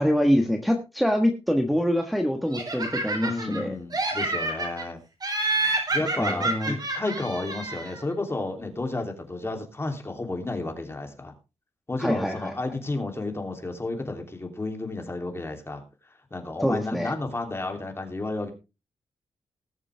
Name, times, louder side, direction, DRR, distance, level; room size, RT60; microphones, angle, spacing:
voice 1, 0.0-3.8 6.2-6.8 12.0-12.5 16.6-17.1, equal, ahead, 3 dB, 1.5 m, -25 dB
Laughter, 2.5-3.6 3.9-4.8 5.2-8.0, right 2 dB, 40° right, 4.5 m, -28 dB
voice 2, 3.2-5.0 5.9-11.3 11.9-15.8 16.3-18.5, left 2 dB, 25° left, 4 dB, 3.1 m, -32 dB
20.0 x 7.3 x 3.5 m, 0.29 s
wide cardioid pair, 115°, 11 cm